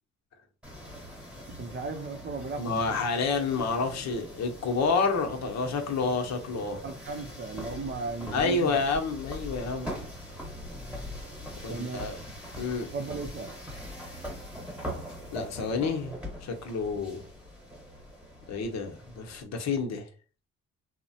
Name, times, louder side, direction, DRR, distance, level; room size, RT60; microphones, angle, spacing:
sound 1, 0.6-19.4, equal, 5° right, 1.1 m, -42 dB
voice 1, 1.6-3.0 6.8-8.8 11.7-12.1 12.9-13.5, right 3 dB, 35° right, 0.6 m, -36 dB
voice 2, 2.5-6.8 8.3-10.0 11.6-12.2 12.6-12.9 15.3-16.1 16.4-17.2 18.5-20.1, left 4 dB, 60° left, 0.8 m, -29 dB
3.0 x 2.1 x 2.7 m
cardioid pair, 90°, 30 cm